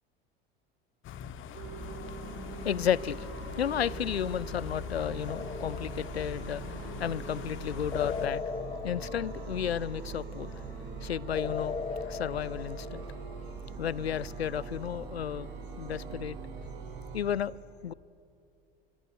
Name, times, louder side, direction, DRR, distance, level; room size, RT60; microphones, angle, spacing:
sound 1, 1.0-8.3, left 9 dB, 40° left, 1.6 m, -43 dB
sound 2, 1.5-17.2, right 4 dB, 60° right, 4.8 m, -42 dB
voice 1, 2.4-13.1 13.8-15.5 15.8-16.4 17.1-17.5 17.8-17.9, left 9 dB, 90° left, 0.5 m, -33 dB
sound 3, 5.3-6.6 7.9-10.1 11.3-13.5, left 6 dB, 20° left, 1.0 m, -38 dB
26.0 x 24.0 x 9.0 m
hypercardioid pair, 80°, 30 cm